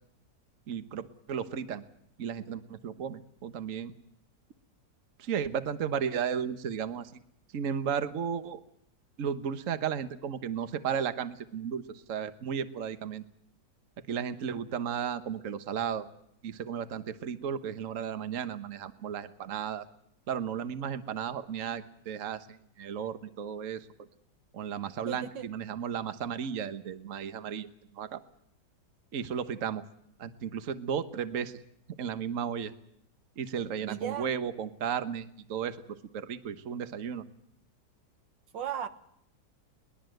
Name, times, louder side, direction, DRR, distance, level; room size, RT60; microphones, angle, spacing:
voice 1, 0.7-1.8 2.2-3.9 5.2-7.1 7.5-8.6 9.2-13.2 14.1-16.1 16.4-19.8 20.3-23.8 24.5-27.7 27.9-28.2 29.1-29.8 30.2-31.5 32.0-32.7 33.4-35.8 36.1-37.2, right 7 dB, 50° right, 11 dB, 1.4 m, -34 dB
voice 2, 25.1-25.5 33.9-34.3 38.5-38.9, right 9 dB, 85° right, 10 dB, 1.9 m, -35 dB
22.0 x 20.0 x 7.9 m, 0.73 s
omnidirectional pair, 1.9 m